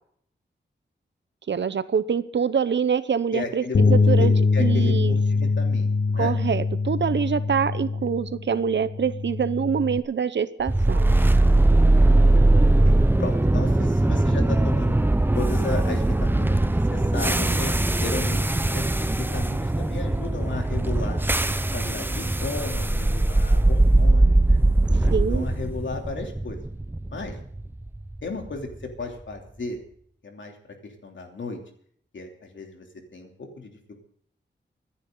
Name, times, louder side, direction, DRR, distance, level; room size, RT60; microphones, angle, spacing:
voice 1, 1.5-4.3 4.6-5.1 6.1-11.1 25.1-25.5, right 7 dB, 70° right, 15 dB, 0.8 m, -25 dB
voice 2, 3.3-6.3 12.8-12.9 13.2-14.9 15.3-17.7 18.0-21.2 21.7-24.6 25.0-26.6 27.1-27.3 28.2-29.8 30.2-30.6 30.8-31.6 32.1-32.9 33.1-34.0, left 3 dB, 75° left, 2 dB, 3.1 m, -34 dB
Bass guitar, 3.7-10.0, left 4 dB, 55° left, 0.8 m, -23 dB
sound 1, 10.7-28.7, right 2 dB, 10° right, 0.6 m, -21 dB
25.0 x 10.5 x 3.9 m, 0.62 s
wide cardioid pair, 115°, 19 cm